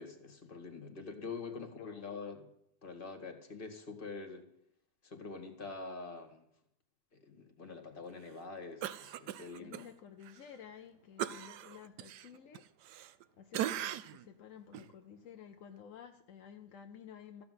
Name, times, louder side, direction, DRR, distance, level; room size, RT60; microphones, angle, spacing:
voice 1, 0.0-2.5 2.8-4.5 5.0-6.4 7.1-9.9, left 4 dB, 30° left, 2.0 m, -45 dB
voice 2, 1.2-2.2 9.6-12.7 12.9-17.4, left 8 dB, 60° left, 0.8 m, -53 dB
Cough, 8.8-9.9 10.2-10.4 11.2-13.2 13.5-14.3 14.7-14.9, right 12 dB, 70° right, 1.1 m, -39 dB
14.0 x 6.0 x 9.3 m
omnidirectional pair, 2.1 m